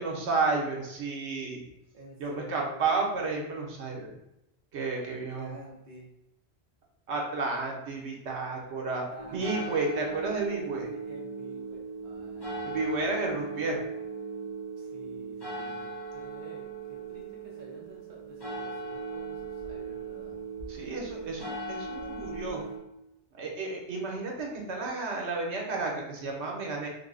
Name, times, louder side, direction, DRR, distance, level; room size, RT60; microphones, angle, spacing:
voice 1, 0.0-1.6 2.2-4.1 4.7-5.5 7.1-9.1 9.3-10.9 12.6-13.8 20.7-22.6 23.3-26.9, right 3 dB, 80° right, 0 dB, 1.1 m, -32 dB
voice 2, 1.9-2.9 5.0-6.1 9.1-9.8 10.8-13.1 14.8-20.4, right 1 dB, 55° right, -4 dB, 0.8 m, -49 dB
sound 1, 9.2-22.8, right 4 dB, 25° left, 0.6 m, -38 dB
3.5 x 2.0 x 3.7 m, 0.88 s
omnidirectional pair, 1.1 m